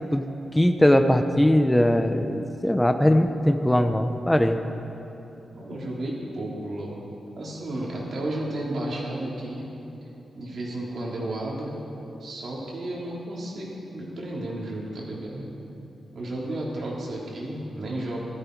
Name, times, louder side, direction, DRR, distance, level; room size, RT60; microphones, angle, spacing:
voice 1, 0.5-4.6, left 1 dB, 10° left, 7 dB, 0.7 m, -20 dB
voice 2, 5.5-7.0 7.3-9.7 10.3-11.8 12.2-15.5 16.1-18.2, right 1 dB, 65° right, -4 dB, 3.3 m, -32 dB
15.5 x 13.5 x 4.7 m, 2.9 s
wide cardioid pair, 115°, 0 cm